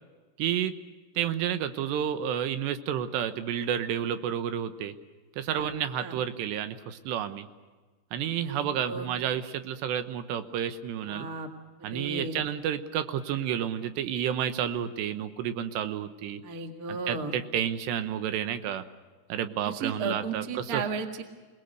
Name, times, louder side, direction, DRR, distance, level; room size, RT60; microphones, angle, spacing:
voice 1, 0.4-0.7 1.2-4.9 5.4-7.5 8.1-11.3 11.8-16.4 16.9-18.8 19.3-20.8, right 9 dB, 85° right, 10 dB, 3.2 m, -30 dB
voice 2, 8.4-9.1 11.1-11.5 11.8-12.4 16.4-17.3 19.6-21.2, right 4 dB, 50° right, 4 dB, 1.0 m, -35 dB
28.0 x 19.5 x 6.6 m, 1.4 s
omnidirectional pair, 4.9 m